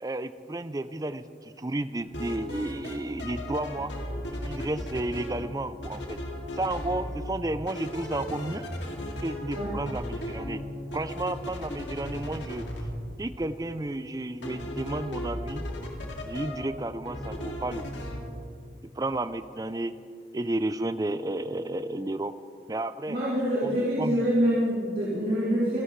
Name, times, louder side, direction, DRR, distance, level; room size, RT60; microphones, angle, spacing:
voice 1, 0.0-3.9 4.3-6.2 6.5-8.7 9.2-10.6 10.9-12.7 13.2-15.7 16.3-18.0 19.0-20.0 20.3-22.4 22.7-23.2 23.6-24.2, right 2 dB, 20° right, 13 dB, 0.4 m, -32 dB
sound 1, 2.0-2.9 3.2-5.5 5.8-7.4 7.7-12.8 14.4-16.7 17.0-18.2, left 1 dB, 85° left, 2.4 m, -36 dB
voice 2, 23.1-25.8, equal, 50° right, -9 dB, 2.9 m, -25 dB
27.0 x 12.5 x 3.2 m, 2.4 s
head